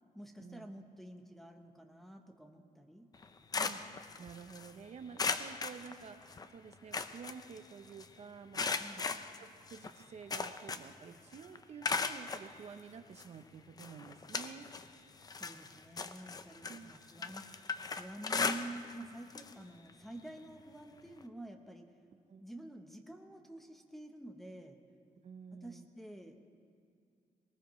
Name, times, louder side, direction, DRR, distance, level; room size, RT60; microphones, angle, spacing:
voice 1, 0.1-3.1 8.8-9.1 15.4-17.5 17.8-21.9 22.4-24.8 25.5-26.4, right 1 dB, ahead, 3 dB, 0.9 m, -49 dB
sound 1, 3.1-4.7 5.2-6.5 6.7-8.1 8.5-11.0 11.3-12.5 13.2-13.3 13.8-14.9 15.2-19.0 19.3-19.5 19.9-20.0 21.2-21.3, left 4 dB, 25° left, 0.5 m, -37 dB
voice 2, 3.5-8.6 8.9-9.0 9.4-14.7 16.7-16.9 17.2-17.3 22.3-22.4 25.2-25.9, right 6 dB, 50° right, 8 dB, 0.7 m, -51 dB
20.0 x 19.0 x 3.1 m, 2.3 s
wide cardioid pair, 160°, 14 cm